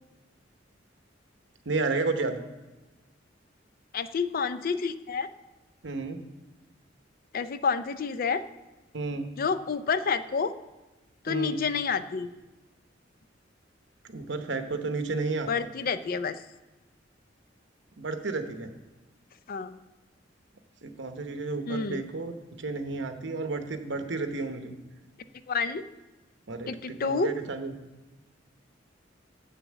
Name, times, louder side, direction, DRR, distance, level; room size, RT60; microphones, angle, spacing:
voice 1, 1.7-2.4 5.8-6.2 8.9-9.3 11.3-11.6 14.1-15.5 18.0-18.7 20.8-22.3 22.6-24.7 26.5-27.7, right 3 dB, 65° right, 7 dB, 0.9 m, -32 dB
voice 2, 3.9-5.3 7.3-8.5 9.4-10.5 11.2-12.3 15.5-16.4 19.5-19.8 21.7-22.0 25.5-25.8 26.7-27.3, left 5 dB, 50° left, 13 dB, 0.4 m, -29 dB
7.0 x 6.6 x 7.3 m, 1.1 s
head